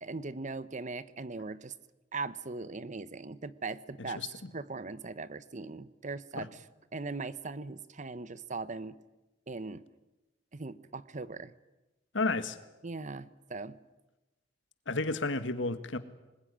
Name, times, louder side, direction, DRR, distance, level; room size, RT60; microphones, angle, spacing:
voice 1, 0.0-1.7 2.1-4.2 4.5-6.6 6.9-9.0 9.5-9.8 10.5-11.5 12.8-13.8, right 3 dB, 40° right, 1.0 m, -39 dB
voice 2, 4.1-4.5 6.4-6.5 12.1-12.6 14.9-16.0, left 3 dB, 80° left, 1.8 m, -32 dB
25.5 x 20.5 x 10.0 m
head